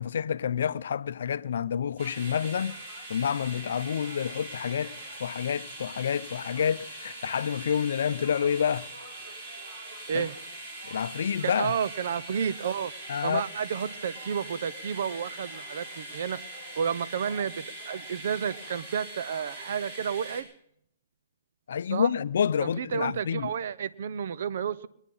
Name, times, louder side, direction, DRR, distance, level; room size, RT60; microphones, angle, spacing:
voice 1, 0.0-4.9 5.2-8.9 10.1-10.3 10.8-11.8 13.1-13.4 21.7-23.5, left 8 dB, 70° left, 0.5 m, -28 dB
sound 1, 2.0-20.4, right 1 dB, 40° right, 5.3 m, -42 dB
voice 2, 11.4-12.9 13.2-20.5 21.9-22.1 22.6-24.9, right 7 dB, 65° right, 0.7 m, -31 dB
22.5 x 10.0 x 5.5 m
hypercardioid pair, 140°, 0 cm